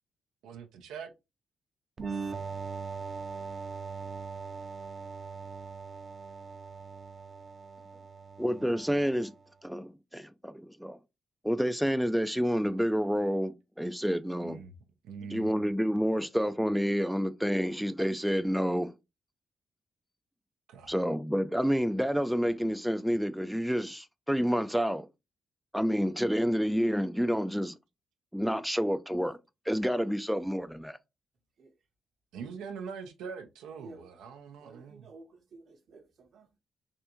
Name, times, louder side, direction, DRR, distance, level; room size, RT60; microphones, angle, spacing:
voice 1, 0.4-1.1 14.4-14.7 15.0-15.6 20.7-20.9 32.3-35.1, right 6 dB, 90° right, 0.5 m, -43 dB
sound 1, 2.0-9.4, right 5 dB, 45° right, 0.6 m, -40 dB
voice 2, 8.4-9.3 9.6-11.0 11.4-14.6 15.3-18.9 20.9-25.1 25.7-27.8 28.3-29.4 29.7-31.0, equal, ahead, 0.3 m, -29 dB
voice 3, 34.6-36.6, right 3 dB, 65° right, 0.9 m, -52 dB
3.4 x 2.6 x 2.8 m
cardioid pair, 65°, 0 cm